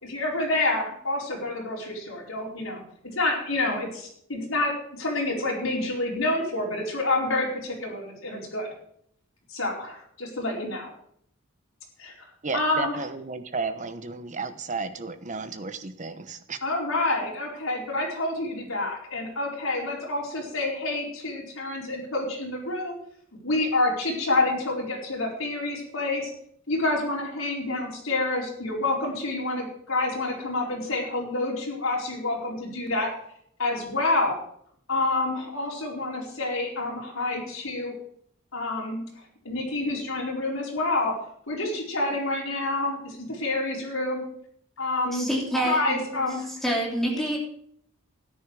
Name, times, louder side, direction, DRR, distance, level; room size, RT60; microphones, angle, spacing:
voice 1, 0.0-2.8 3.1-4.7 5.0-8.7 9.5-10.9 12.0-12.1 12.5-13.0 16.6-23.0 23.4-26.3 26.7-33.1 33.6-34.4 34.9-37.9 38.5-39.0 39.4-41.1 41.5-44.2 44.8-45.3 45.6-46.5, left 2 dB, 80° left, -2 dB, 4.6 m, -28 dB
voice 2, 12.4-16.6, right 4 dB, 35° right, 10 dB, 1.0 m, -33 dB
voice 3, 45.1-46.2 46.6-47.4, right 1 dB, ahead, -3 dB, 3.5 m, -27 dB
13.0 x 10.5 x 4.8 m, 0.66 s
head